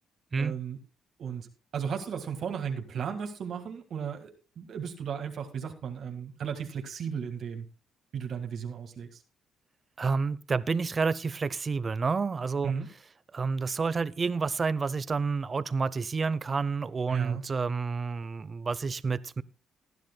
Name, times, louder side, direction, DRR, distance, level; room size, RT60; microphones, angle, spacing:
voice 1, 0.4-0.8 1.2-7.7 8.1-9.2 12.6-12.9 17.1-17.4, right 7 dB, 60° right, 1.8 m, -35 dB
voice 2, 10.0-12.7 13.3-19.4, right 4 dB, 35° right, 0.7 m, -29 dB
19.0 x 10.5 x 2.2 m
cardioid pair, 90°, 0 cm